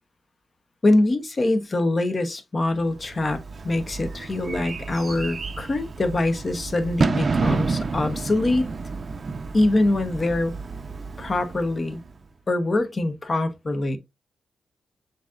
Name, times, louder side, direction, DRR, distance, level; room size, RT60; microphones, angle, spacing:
voice 1, 0.8-3.4 3.6-8.7 9.5-10.5 11.2-12.0 12.5-14.0, left 2 dB, 40° left, 1.0 m, -23 dB
Bird / Fireworks, 3.0-12.2, right 4 dB, 50° right, 0.5 m, -30 dB
7.1 x 2.8 x 2.5 m
cardioid pair, 60°, 0 cm